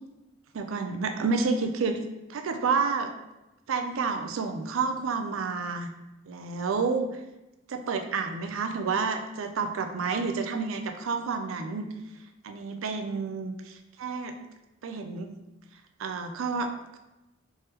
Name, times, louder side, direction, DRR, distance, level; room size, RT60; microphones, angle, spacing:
voice 1, 0.5-2.0 2.3-3.1 3.7-5.9 6.3-7.1 7.7-11.9 12.4-14.3 14.8-15.3 16.0-16.7, right 4 dB, 85° right, 6 dB, 0.4 m, -29 dB
3.5 x 3.3 x 2.8 m, 0.97 s
head